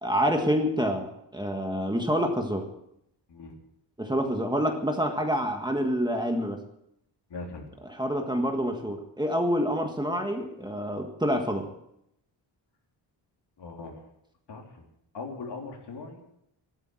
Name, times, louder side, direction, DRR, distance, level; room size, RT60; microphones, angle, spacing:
voice 1, 0.0-2.6 4.0-6.6 7.8-11.7, equal, 10° right, 3 dB, 1.6 m, -27 dB
voice 2, 7.3-7.7 13.6-14.0 14.5-14.8 15.1-16.2, left 3 dB, 60° left, 1 dB, 3.8 m, -40 dB
15.0 x 12.5 x 7.7 m, 0.77 s
wide cardioid pair, 165°, 45 cm